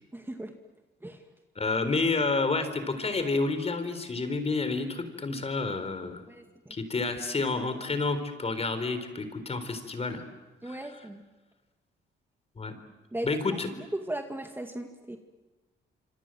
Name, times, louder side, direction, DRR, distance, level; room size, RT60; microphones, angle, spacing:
voice 1, 0.1-0.5 1.0-1.2 5.3-5.4 6.3-6.8 10.6-11.2 13.1-13.3 13.8-15.2, right 1 dB, 10° right, 5 dB, 2.1 m, -37 dB
voice 2, 1.6-6.2 6.7-10.2 10.6-11.0 12.6-12.7 13.2-13.7, left 3 dB, 30° left, 10 dB, 4.0 m, -29 dB
26.5 x 26.0 x 7.7 m, 1.2 s
cardioid pair, 90°, 20 cm